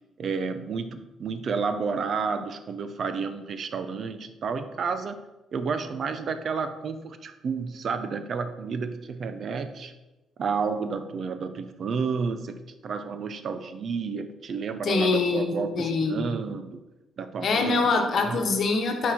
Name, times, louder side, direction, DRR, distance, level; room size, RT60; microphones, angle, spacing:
voice 1, 0.2-5.2 5.5-9.9 10.4-12.6 12.8-16.8 17.2-17.8 18.3-18.4, right 5 dB, 55° right, 9 dB, 0.5 m, -31 dB
voice 2, 14.8-16.3 17.4-19.1, left 4 dB, 60° left, 3 dB, 1.1 m, -24 dB
5.7 x 4.7 x 4.2 m, 1.0 s
cardioid pair, 90°, 0 cm